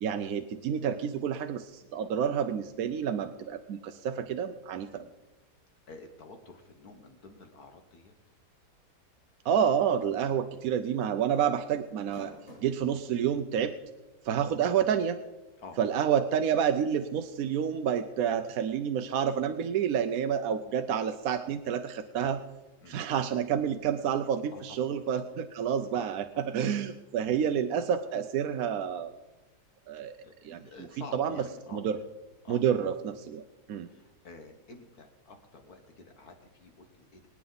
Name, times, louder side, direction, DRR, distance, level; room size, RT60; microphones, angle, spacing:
voice 1, 0.0-5.0 9.4-12.3 12.6-13.7 14.2-15.2 15.8-22.4 22.9-29.1 29.9-30.1 30.4-30.6 31.1-31.4 31.7-32.0 32.5-33.9, right 8 dB, 65° right, 8 dB, 1.0 m, -29 dB
voice 2, 5.9-8.1 14.4-14.6 15.6-15.8 22.8-23.0 24.5-24.9 25.9-26.1 27.2-27.3 30.2-31.8 32.4-32.6 33.9-37.3, left 3 dB, 60° left, 5 dB, 1.8 m, -49 dB
sound 1, 10.2-10.4 10.7-10.8 11.9-12.8 13.6-13.7 15.2-15.3, left 1 dB, 35° left, 5.5 m, -48 dB
24.0 x 9.6 x 4.0 m, 1.1 s
omnidirectional pair, 1.8 m